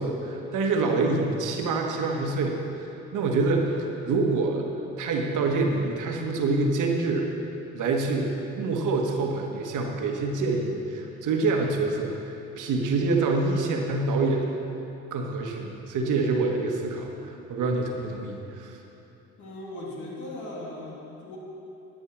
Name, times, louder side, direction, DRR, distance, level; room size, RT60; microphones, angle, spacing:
voice 1, 0.0-4.7 5.0-7.3 7.7-8.3 8.6-14.4 15.1-18.8, right 3 dB, 60° right, 2 dB, 1.4 m, -26 dB
voice 2, 19.4-21.4, left 1 dB, 60° left, -4 dB, 2.7 m, -38 dB
11.0 x 6.6 x 6.0 m, 2.9 s
hypercardioid pair, 55°, 34 cm